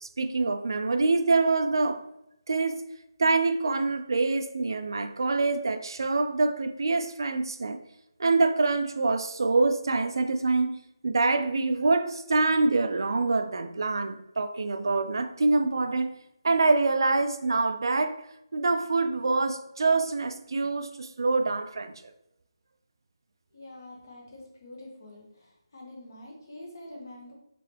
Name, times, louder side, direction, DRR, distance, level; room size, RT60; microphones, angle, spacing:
voice 1, 0.0-2.0 2.5-2.8 3.2-7.8 8.2-16.1 16.4-18.2 18.5-21.9, right 3 dB, 60° right, 0.3 m, -25 dB
voice 2, 23.5-25.2 25.7-27.3, left 1 dB, 45° left, 1.2 m, -45 dB
3.7 x 3.2 x 3.3 m
hypercardioid pair, 175°, 3 cm